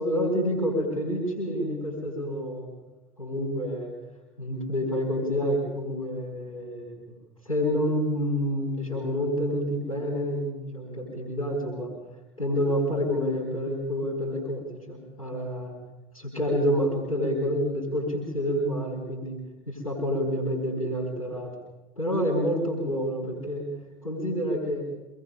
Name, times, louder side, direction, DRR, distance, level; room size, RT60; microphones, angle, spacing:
voice 1, 0.0-2.7 3.2-3.9 4.4-7.0 7.4-11.9 12.4-14.6 14.9-15.7 16.1-19.4 19.7-21.5 22.0-23.7 24.0-24.9, equal, 80° left, -3 dB, 5.0 m, -28 dB
25.5 x 20.0 x 6.9 m, 1.1 s
figure-of-eight pair, 70°, 18 cm